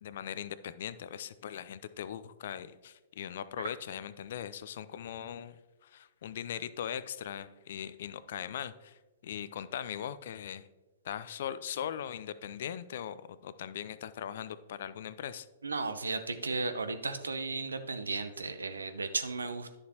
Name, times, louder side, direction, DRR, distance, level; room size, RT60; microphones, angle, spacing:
voice 1, 0.0-5.6 5.8-9.0 9.2-10.7 11.0-15.5, left 9 dB, 60° left, 15 dB, 0.4 m, -40 dB
voice 2, 15.6-19.8, right 3 dB, 80° right, 10 dB, 0.7 m, -35 dB
11.0 x 6.6 x 2.9 m, 1.1 s
figure-of-eight pair, 110°, 0 cm